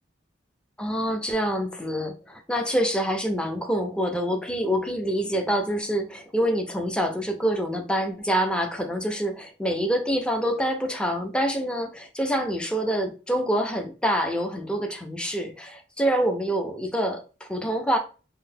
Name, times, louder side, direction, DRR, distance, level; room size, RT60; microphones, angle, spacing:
voice 1, 0.8-18.0, equal, 5° left, 3 dB, 0.4 m, -26 dB
3.8 x 2.1 x 2.6 m, 0.35 s
head